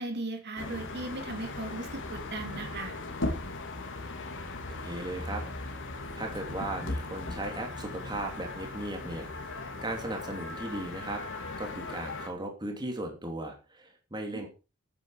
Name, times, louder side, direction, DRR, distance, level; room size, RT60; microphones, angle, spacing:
voice 1, 0.0-3.0 14.3-14.5, right 2 dB, 50° right, 4 dB, 3.2 m, -37 dB
sound 1, 0.6-12.3, left 2 dB, 60° left, 2.9 m, -38 dB
voice 2, 4.7-5.4 6.1-11.2 11.6-14.5, right 1 dB, 20° right, 2 dB, 3.0 m, -37 dB
14.0 x 9.7 x 5.0 m, 0.32 s
head